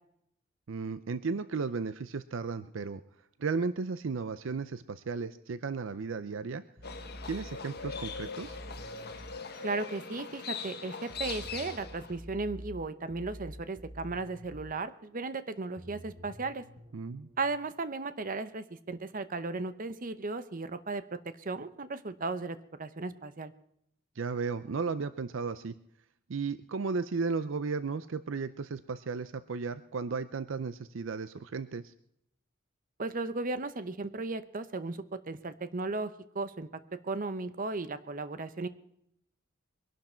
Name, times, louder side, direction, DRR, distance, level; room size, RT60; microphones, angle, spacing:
voice 1, 0.7-3.0 3.4-6.6 7.2-8.6 16.9-17.3 24.2-25.7 26.3-31.9, right 4 dB, 65° right, 13 dB, 0.5 m, -34 dB
Livestock farm animals working animals, 6.8-12.2, left 5 dB, 55° left, 1.4 m, -41 dB
sound 1, 6.8-9.4 11.1-14.7 15.8-17.4, equal, 85° right, 4.2 m, -47 dB
voice 2, 9.6-16.6 17.4-23.5 33.0-36.7 37.0-38.7, right 3 dB, 40° right, 12 dB, 0.8 m, -36 dB
22.5 x 11.5 x 4.5 m, 0.76 s
head